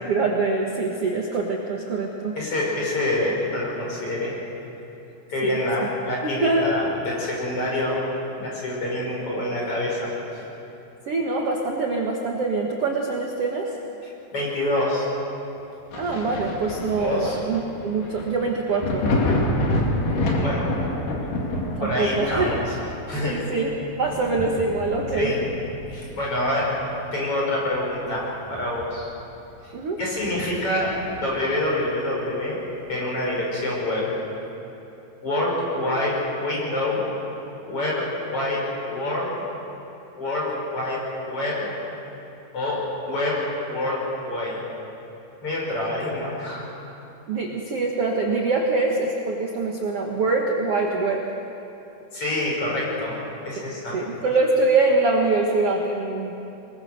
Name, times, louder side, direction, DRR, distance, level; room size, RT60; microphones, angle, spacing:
voice 1, 0.0-2.4 5.4-5.9 6.2-6.7 11.1-13.7 15.9-19.1 21.8-22.5 23.2-25.3 29.7-30.0 47.3-51.2 53.6-53.7 53.9-56.4, right 3 dB, 55° right, 0 dB, 1.9 m, -24 dB
voice 2, 2.4-4.4 5.3-8.0 8.3-10.4 14.3-15.1 17.0-17.4 20.4-20.6 21.8-22.8 23.1-23.4 25.2-25.4 25.9-26.7 27.1-29.1 29.6-29.7 30.0-32.6 32.9-34.1 35.2-37.0 37.7-39.4 40.2-41.7 42.5-44.6 45.4-46.6 52.1-53.1 53.4-54.0, left 1 dB, 40° left, -4 dB, 6.5 m, -26 dB
Thunder, 15.9-27.3 27.7-29.2 29.5-29.6 30.2-31.5 32.9-33.0, left 1 dB, 65° left, 4.0 m, -29 dB
24.0 x 21.5 x 6.6 m, 2.9 s
omnidirectional pair, 4.2 m